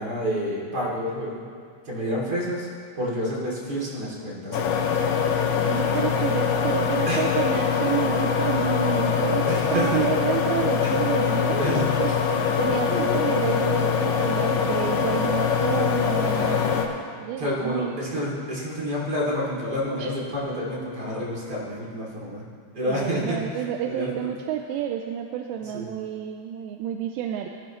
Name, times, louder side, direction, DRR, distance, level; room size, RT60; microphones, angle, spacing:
voice 1, 0.0-1.5 1.8-2.7 2.9-4.9 7.1-7.3 9.5-10.0 10.8-10.9 11.6-11.9 12.9-13.2 16.3-16.7 17.4-22.4 22.7-24.1 25.6-25.9, equal, 30° right, -6 dB, 2.4 m, -29 dB
sound 1, 4.5-16.9, left 7 dB, 90° left, 1.9 m, -23 dB
voice 2, 5.7-12.1 12.6-16.8 17.2-18.0 20.0-20.1 22.9-27.5, right 9 dB, 85° right, 4 dB, 2.7 m, -29 dB
19.5 x 11.0 x 3.1 m, 2.1 s
omnidirectional pair, 5.1 m